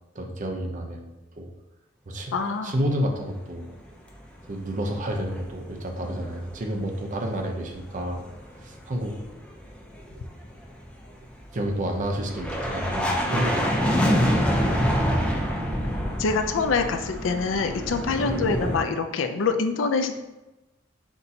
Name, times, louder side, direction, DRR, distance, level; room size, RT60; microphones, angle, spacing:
voice 1, 0.1-1.1 1.4-1.5 2.1-2.3 2.6-3.7 4.5-8.2 8.6-9.1 11.5-14.8, equal, 40° right, 2 dB, 0.6 m, -30 dB
voice 2, 2.3-2.7 16.2-20.2, left 4 dB, 70° left, 7 dB, 0.4 m, -25 dB
sound 1, 4.7-6.8 7.0-18.8, equal, 5° left, 0.5 m, -27 dB
5.9 x 2.8 x 2.7 m, 1.0 s
head